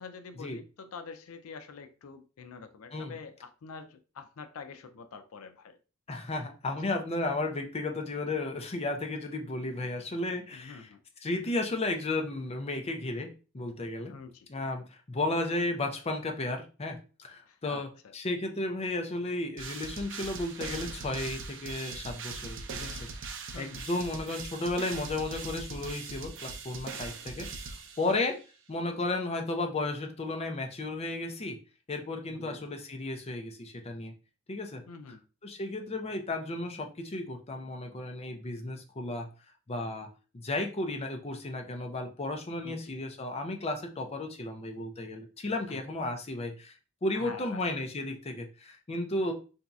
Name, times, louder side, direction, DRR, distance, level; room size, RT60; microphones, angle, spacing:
voice 1, 0.0-5.8 10.5-11.0 14.1-14.5 17.5-18.1 23.5-23.8 32.3-32.6 34.9-35.2 42.6-43.0 45.7-45.8 47.1-47.7, left 5 dB, 80° left, 0.4 m, -46 dB
voice 2, 6.1-10.9 11.2-14.1 14.5-23.1 23.6-28.4 28.7-31.6 31.9-34.1 34.5-34.8 35.4-39.3 39.7-40.1 40.3-46.8 47.0-49.3, left 2 dB, 30° left, 0.5 m, -34 dB
sound 1, 19.6-28.4, right 4 dB, 60° right, 0.5 m, -41 dB
4.0 x 2.7 x 2.3 m
head